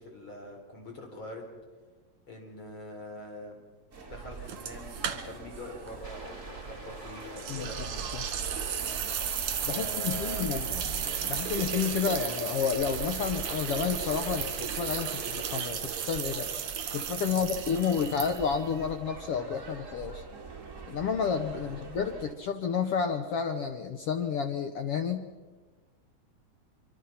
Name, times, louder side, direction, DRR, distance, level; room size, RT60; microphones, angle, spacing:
voice 1, 0.0-1.4 2.3-3.6 4.1-7.8 8.7-9.0 9.7-10.5 17.3-17.5 21.5-21.7, left 1 dB, 40° left, 2 dB, 4.7 m, -44 dB
sound 1, 3.9-22.3, right 5 dB, 25° right, 2.4 m, -43 dB
sound 2, 4.5-5.6 5.9-6.0 7.4-18.7, right 9 dB, 70° right, 3.0 m, -34 dB
sound 3, 6.0-15.7, right 1 dB, 10° left, 2.5 m, -47 dB
voice 2, 9.6-16.5 16.9-20.2 20.9-25.3, left 6 dB, 65° left, 7 dB, 1.6 m, -31 dB
25.0 x 24.5 x 5.8 m, 1.3 s
omnidirectional pair, 3.6 m